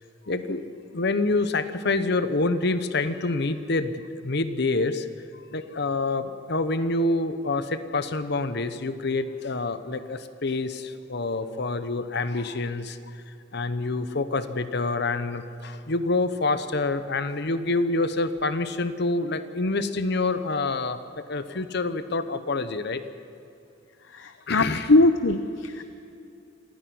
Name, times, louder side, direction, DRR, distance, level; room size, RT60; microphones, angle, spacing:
voice 1, 0.3-0.6 0.9-5.1 5.3-21.0 21.3-23.1 24.5-24.9, left 3 dB, 60° left, 11 dB, 1.0 m, -27 dB
voice 2, 24.1-25.8, left 2 dB, 80° left, 9 dB, 0.8 m, -21 dB
27.0 x 10.5 x 9.4 m, 2.6 s
head